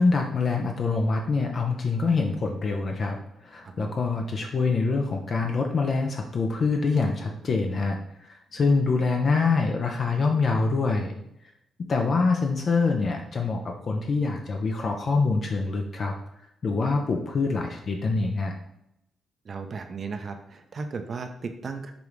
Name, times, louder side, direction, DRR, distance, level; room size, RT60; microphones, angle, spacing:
voice 1, 0.0-11.2 11.9-16.1 16.6-18.5, left 4 dB, 55° left, 2 dB, 0.5 m, -25 dB
voice 2, 3.6-4.0 19.4-21.9, right 4 dB, 55° right, 6 dB, 0.5 m, -35 dB
4.9 x 2.4 x 3.1 m, 0.81 s
supercardioid pair, 55°, 0 cm